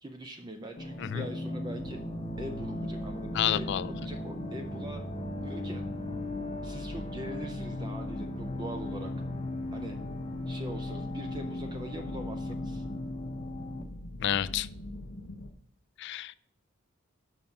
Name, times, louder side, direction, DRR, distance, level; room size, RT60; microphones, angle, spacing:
voice 1, 0.0-2.0 2.4-3.6 4.0-5.0 5.4-5.8 6.6-9.1 9.7-10.0 10.5-12.8, right 1 dB, 20° right, 4 dB, 0.5 m, -42 dB
sound 1, 0.8-13.8, left 1 dB, 30° left, 0.8 m, -37 dB
sound 2, 1.8-15.5, left 1 dB, 80° left, 0.8 m, -43 dB
voice 2, 3.3-3.9 14.2-14.7 16.0-16.4, left 10 dB, 60° left, 16 dB, 0.3 m, -29 dB
5.8 x 5.4 x 6.5 m, 0.72 s
head